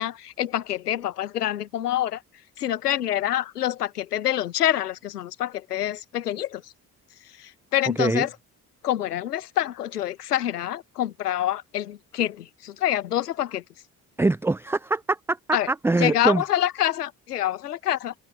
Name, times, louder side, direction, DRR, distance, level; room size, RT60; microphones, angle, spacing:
voice 1, 0.0-2.2 2.6-6.6 7.4-8.3 8.8-13.6 15.5-15.7 16.0-18.1, left 12 dB, 80° left, 1.1 m, -26 dB
voice 2, 14.2-15.4 15.7-16.4, right 2 dB, 5° right, 0.5 m, -23 dB
figure-of-eight pair, 45°, 46 cm